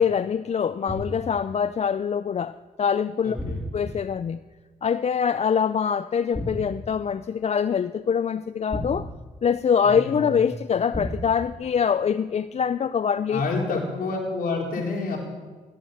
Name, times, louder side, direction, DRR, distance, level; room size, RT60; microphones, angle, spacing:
voice 1, 0.0-3.4 3.7-4.4 4.8-9.1 9.4-13.4 13.7-13.8, left 7 dB, 45° left, 0.5 m, -24 dB
sound 1, 0.9-1.4 3.4-4.1 6.3-6.9 8.7-9.6 10.9-11.5, left 1 dB, 10° left, 3.4 m, -33 dB
voice 2, 3.2-3.6 9.8-10.3 13.3-15.2, left 3 dB, 70° left, 4.1 m, -28 dB
16.5 x 11.0 x 6.5 m
cardioid pair, 65°, 16 cm